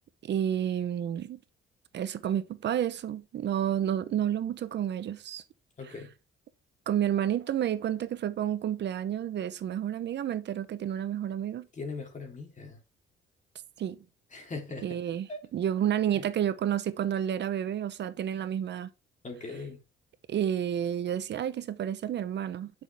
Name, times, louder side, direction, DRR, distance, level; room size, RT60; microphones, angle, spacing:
voice 1, 0.2-1.4 1.9-5.4 5.8-6.0 6.9-11.7 13.8-14.0 14.8-18.9 20.3-22.7, right 10 dB, 60° right, 0.8 m, -30 dB
voice 2, 5.8-6.1 11.7-12.8 14.3-15.0 15.3-15.4 16.1-16.2 19.2-19.8, left 3 dB, 40° left, 3.4 m, -40 dB
9.1 x 6.2 x 3.5 m
cardioid pair, 90°, 20 cm